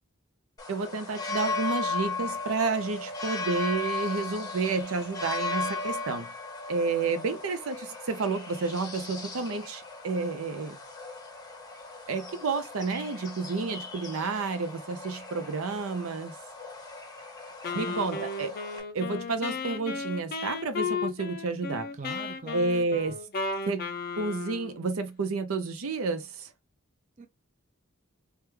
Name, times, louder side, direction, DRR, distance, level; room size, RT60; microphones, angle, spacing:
sound 1, 0.6-18.8, left 3 dB, 20° left, 0.7 m, -37 dB
voice 1, 0.7-6.3 6.7-10.8 12.1-16.3 17.7-21.9 22.5-23.1 23.7-23.9 24.2-26.5, right 4 dB, 85° right, 0.6 m, -30 dB
Wind instrument woodwind instrument, 17.6-24.8, left 4 dB, 45° left, 0.4 m, -34 dB
voice 2, 17.6-18.0 21.9-23.2 27.2-27.3, right 5 dB, 35° right, 0.4 m, -42 dB
3.3 x 2.3 x 3.1 m
head